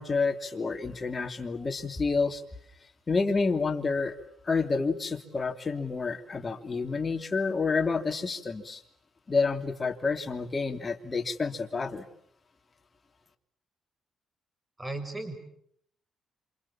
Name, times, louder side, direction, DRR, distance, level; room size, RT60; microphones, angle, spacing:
voice 1, 0.0-2.4 3.1-4.2 4.4-8.8 9.3-12.1, left 4 dB, 30° left, 6 dB, 2.9 m, -29 dB
voice 2, 14.8-15.4, right 2 dB, 15° right, 9 dB, 6.5 m, -35 dB
28.0 x 28.0 x 7.4 m, 0.69 s
cardioid pair, 90°, 0 cm